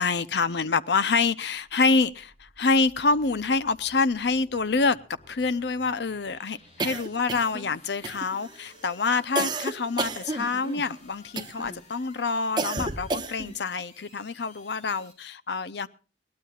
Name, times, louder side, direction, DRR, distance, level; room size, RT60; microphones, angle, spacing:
voice 1, 0.0-5.0 5.3-15.9, left 4 dB, 75° left, 15 dB, 0.7 m, -26 dB
sound 1, 1.4-15.1, left 1 dB, 40° left, 5.1 m, -55 dB
sound 2, 6.8-7.7 8.0-8.6 9.4-10.8 11.4-11.8 12.6-13.6, right 3 dB, 25° right, 1.2 m, -31 dB
22.0 x 18.5 x 2.4 m, 0.37 s
head